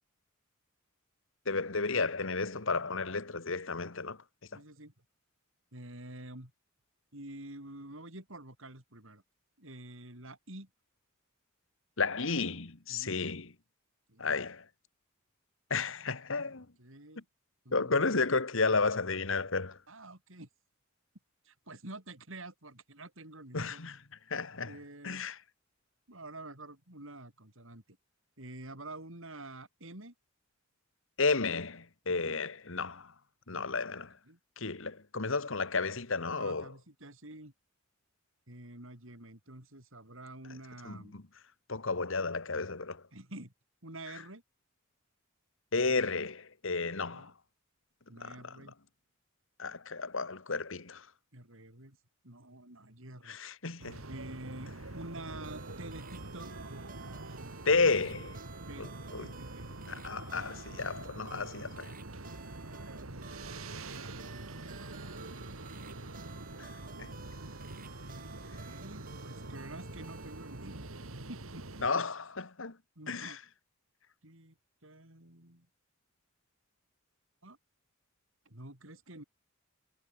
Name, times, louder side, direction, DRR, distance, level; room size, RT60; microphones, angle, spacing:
voice 1, 1.5-4.2 12.0-13.5 14.2-14.6 15.7-16.7 17.7-19.8 23.5-24.0 24.3-24.8 25.0-25.4 31.2-33.1 33.5-34.1 34.6-36.7 40.9-41.2 41.7-43.0 45.7-47.3 48.2-48.5 49.6-51.1 53.3-54.0 57.7-58.4 58.8-59.3 59.9-61.9 66.6-66.7 67.0-67.1 71.8-72.8 73.1-73.4, left 4 dB, 70° left, 1.8 m, -32 dB
voice 2, 4.5-4.9 5.7-6.5 7.1-9.2 9.6-10.7 12.9-13.1 14.1-14.3 16.8-17.2 17.6-18.2 19.9-20.5 21.4-23.8 24.6-25.2 26.1-27.8 28.4-30.1 32.1-32.4 33.5-33.6 33.9-34.4 36.4-37.5 38.5-41.1 43.1-43.5 43.8-44.4 47.1-47.3 48.1-48.7 51.3-52.0 52.2-53.4 54.1-56.5 58.7-58.9 59.2-59.7 63.9-64.6 68.3-70.9 71.3-71.9 73.0-73.4 74.2-74.6 74.8-75.7 77.4-77.6 78.5-79.2, right 2 dB, 70° right, 6.2 m, -48 dB
sound 1, 53.8-71.9, right 2 dB, 85° right, 2.7 m, -45 dB
sound 2, 55.4-71.6, right 6 dB, 45° right, 6.2 m, -54 dB
head